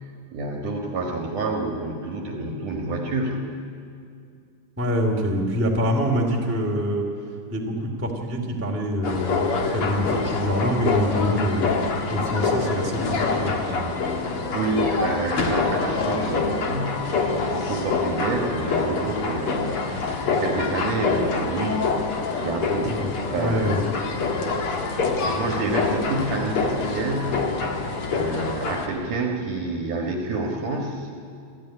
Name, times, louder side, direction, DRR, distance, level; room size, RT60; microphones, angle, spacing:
voice 1, 0.0-3.6 14.3-27.6 28.1-31.1, right 2 dB, 55° right, 2 dB, 2.5 m, -29 dB
voice 2, 4.8-7.0 7.5-11.7 12.1-13.9 22.8-23.8, equal, 5° right, 0 dB, 1.4 m, -25 dB
sound 1, 9.0-28.9, left 4 dB, 50° left, 1.7 m, -26 dB
27.5 x 13.5 x 9.9 m, 2.4 s
omnidirectional pair, 5.1 m